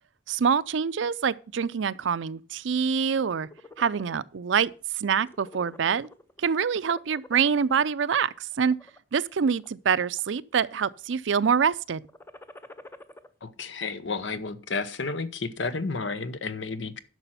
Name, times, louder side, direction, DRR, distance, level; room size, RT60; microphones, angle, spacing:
voice 1, 0.3-3.5 3.8-4.7 5.0-6.1 6.4-8.8 9.1-12.0, right 6 dB, 75° right, 0.5 m, -25 dB
sound 1, 3.1-4.1 4.6-4.8 5.1-6.4 6.8-7.9 8.5-9.0 9.6-10.3 10.6-11.1 12.0-13.3, left 2 dB, 10° left, 0.6 m, -48 dB
voice 2, 13.4-17.0, left 4 dB, 70° left, 0.9 m, -32 dB
11.0 x 6.2 x 5.7 m
head